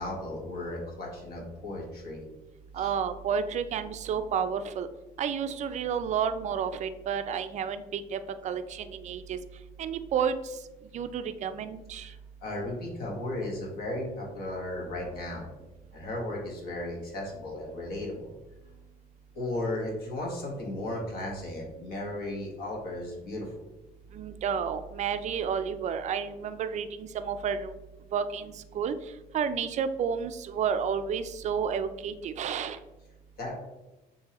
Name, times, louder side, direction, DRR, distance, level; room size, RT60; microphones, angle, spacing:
voice 1, 0.0-2.2 2.8-2.9 12.0-12.1 12.4-15.5 15.9-18.3 19.3-23.5 33.4-33.5, left 1 dB, 65° left, -1 dB, 1.5 m, -35 dB
voice 2, 2.7-4.9 5.2-9.4 9.8-10.4 10.9-12.1 24.1-27.7 28.1-28.9 29.3-32.8, right 7 dB, 45° right, 10 dB, 0.4 m, -31 dB
6.6 x 2.7 x 2.9 m, 1.0 s
cardioid pair, 110°, 17 cm